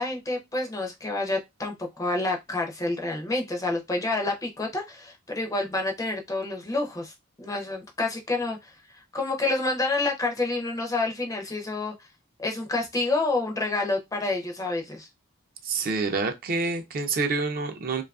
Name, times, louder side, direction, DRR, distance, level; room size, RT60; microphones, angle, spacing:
voice 1, 0.0-8.7 9.1-11.9 12.4-15.1, left 2 dB, 15° left, 0.4 m, -28 dB
voice 2, 15.6-18.0, right 4 dB, 45° right, 0.4 m, -27 dB
2.6 x 2.3 x 2.3 m
head